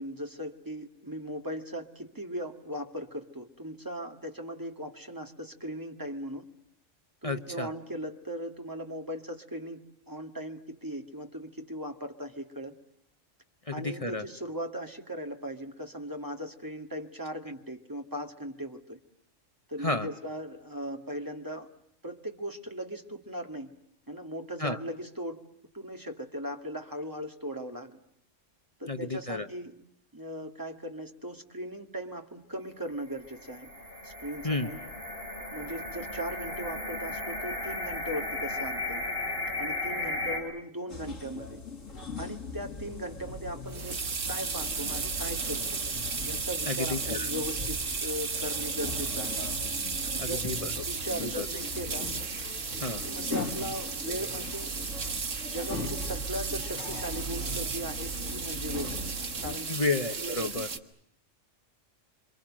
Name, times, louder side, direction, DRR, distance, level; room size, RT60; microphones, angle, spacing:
voice 1, 0.0-6.5 7.2-12.7 13.7-19.0 19.7-21.7 22.0-23.7 24.1-25.4 25.7-28.0 28.8-29.8 30.1-33.7 34.0-34.8 35.5-39.0 39.6-41.6 42.2-45.8 46.2-49.4 50.1-50.4 50.8-52.1 53.0-54.7 55.4-59.0 59.4-59.7 60.2-60.7, equal, 15° right, 4 dB, 2.1 m, -38 dB
voice 2, 7.2-7.7 13.6-14.2 19.8-20.1 24.6-24.8 28.9-29.5 34.4-34.7 46.7-47.3 50.2-50.7 51.2-51.5 52.8-53.1 59.7-60.7, left 2 dB, 30° left, 6 dB, 1.1 m, -31 dB
sound 1, 33.0-40.4, left 2 dB, 50° left, 7.0 m, -35 dB
sound 2, 40.9-59.6, left 2 dB, 80° left, 2.8 m, -39 dB
sound 3, 43.3-60.8, right 5 dB, 70° right, 1.9 m, -34 dB
28.0 x 25.5 x 7.5 m, 0.71 s
omnidirectional pair, 1.3 m